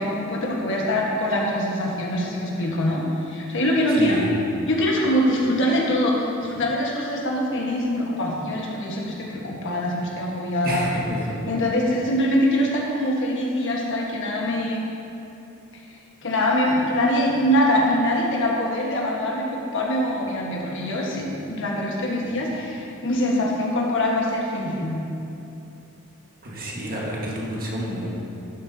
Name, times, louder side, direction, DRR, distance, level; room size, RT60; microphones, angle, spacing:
voice 1, 0.0-4.2 4.7-10.9 11.5-14.8 16.2-25.0, left 1 dB, 60° left, -2 dB, 1.3 m, -23 dB
voice 2, 3.9-4.3 10.6-11.4 26.4-28.1, equal, 45° right, -4 dB, 1.5 m, -28 dB
12.0 x 7.7 x 2.7 m, 2.8 s
head